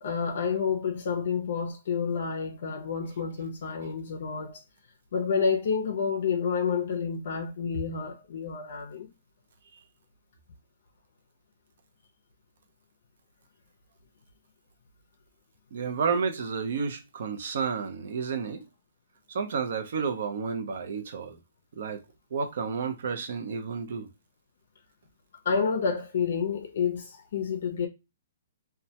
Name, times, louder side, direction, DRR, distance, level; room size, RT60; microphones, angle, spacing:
voice 1, 0.0-4.6 5.1-9.1 25.4-27.9, left 6 dB, 60° left, 0.4 m, -29 dB
voice 2, 15.7-18.6 19.3-21.4 21.7-22.0 22.3-24.1, right 5 dB, 60° right, 0.5 m, -31 dB
2.1 x 2.1 x 2.7 m
hypercardioid pair, 165°, 0 cm